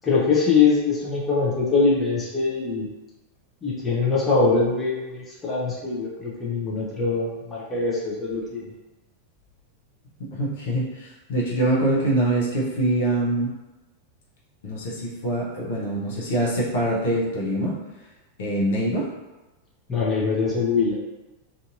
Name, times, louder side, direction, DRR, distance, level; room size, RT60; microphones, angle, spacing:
voice 1, 0.0-2.9 3.6-8.7 19.9-20.9, left 4 dB, 15° left, -6 dB, 0.7 m, -23 dB
voice 2, 10.2-13.5 14.6-17.8 18.4-19.1, right 1 dB, 55° left, -5 dB, 0.7 m, -24 dB
2.6 x 2.6 x 2.6 m, 1.1 s
figure-of-eight pair, 90°, 0 cm